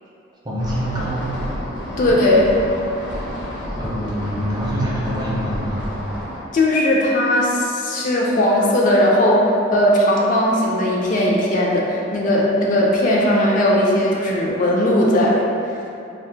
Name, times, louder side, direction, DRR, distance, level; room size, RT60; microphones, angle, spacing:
voice 1, 0.4-1.3 3.8-5.8, equal, 20° right, -6 dB, 0.4 m, -25 dB
sound 1, 0.6-6.4, equal, 70° left, 0.7 m, -30 dB
voice 2, 2.0-2.5 6.5-15.4, left 1 dB, 45° left, -3 dB, 0.3 m, -17 dB
2.7 x 2.0 x 3.3 m, 2.7 s
head